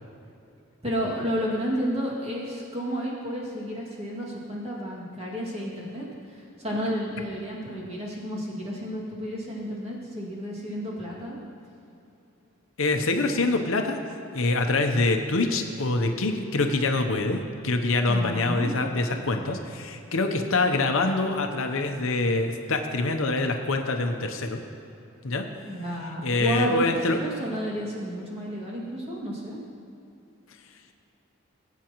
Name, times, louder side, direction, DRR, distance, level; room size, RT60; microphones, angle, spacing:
voice 1, 0.8-11.4 18.1-18.7 25.7-29.6, equal, 25° right, -5 dB, 2.2 m, -31 dB
voice 2, 12.8-24.6 25.2-25.4 26.2-27.2, left 2 dB, 70° left, 5 dB, 0.8 m, -25 dB
19.0 x 8.4 x 3.0 m, 2.8 s
head